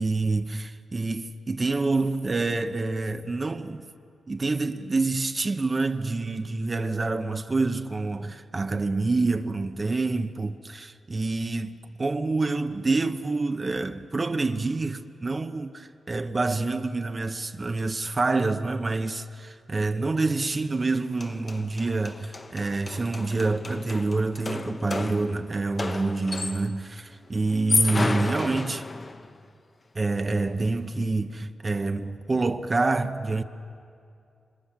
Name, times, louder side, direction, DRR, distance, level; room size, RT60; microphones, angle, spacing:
voice 1, 0.0-3.8 4.3-28.9 29.9-33.4, right 3 dB, 30° right, 0.9 m, -27 dB
sound 1, 20.9-21.0 21.2-26.8 27.5-29.3, left 3 dB, 30° left, 0.9 m, -31 dB
27.5 x 24.5 x 7.4 m
cardioid pair, 95°, 0 cm